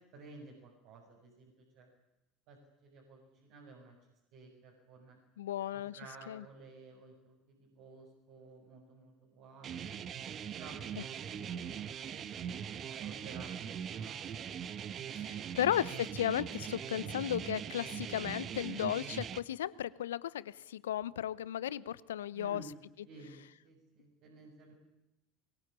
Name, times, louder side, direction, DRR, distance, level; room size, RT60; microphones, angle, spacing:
voice 1, 0.1-1.9 2.5-4.0 4.3-5.2 5.7-9.9 10.5-14.5 15.1-15.6 22.3-22.7 23.1-24.7, right 3 dB, 60° right, -1 dB, 7.6 m, -54 dB
voice 2, 5.4-6.0 6.3-6.4 15.2-22.6, left 11 dB, 75° left, 20 dB, 0.9 m, -35 dB
sound 1, 9.6-19.4, right 8 dB, 45° right, 1.4 m, -41 dB
23.5 x 23.5 x 9.9 m, 0.89 s
figure-of-eight pair, 65°, 0 cm